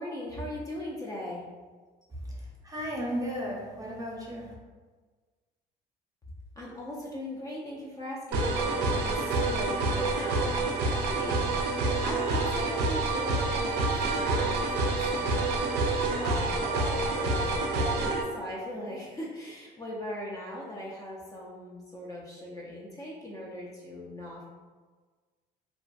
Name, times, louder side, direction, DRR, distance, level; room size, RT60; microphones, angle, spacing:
voice 1, 0.0-1.4 6.6-15.5 16.1-24.5, left 1 dB, 20° left, -4 dB, 0.4 m, -39 dB
voice 2, 2.2-4.5, equal, 20° right, -4 dB, 0.6 m, -35 dB
sound 1, 8.3-18.2, right 2 dB, 85° right, 0.4 m, -27 dB
2.5 x 2.3 x 2.3 m, 1.4 s
cardioid pair, 110°, 17 cm